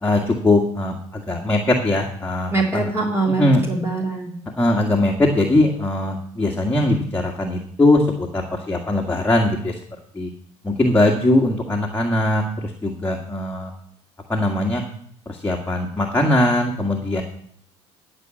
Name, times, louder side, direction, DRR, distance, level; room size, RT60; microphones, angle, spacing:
voice 1, 0.0-2.9 3.4-3.6 4.6-9.7 10.2-10.3 10.6-12.4 12.8-13.7 14.3-14.8 15.3-17.2, left 1 dB, 15° left, -1 dB, 1.9 m, -20 dB
voice 2, 2.5-4.3, right 3 dB, 15° right, -1 dB, 3.1 m, -23 dB
12.5 x 5.5 x 7.7 m, 0.65 s
supercardioid pair, 75°, 15 cm